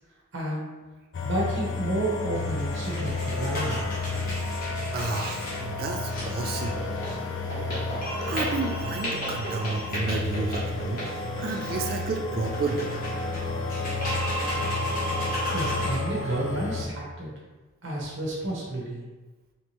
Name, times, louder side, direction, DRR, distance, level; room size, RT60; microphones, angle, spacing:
voice 1, 0.3-0.7 1.2-3.9 15.5-17.3 17.8-19.0, right 1 dB, 60° right, -4 dB, 0.9 m, -30 dB
sound 1, 1.1-16.9, left 3 dB, 60° left, 0.4 m, -32 dB
sound 2, 2.3-16.0, equal, 45° left, 1.0 m, -34 dB
voice 2, 4.9-6.8 8.2-11.0 11.4-12.9, right 3 dB, 45° right, 1 dB, 0.3 m, -31 dB
3.1 x 3.1 x 2.9 m, 1.2 s
head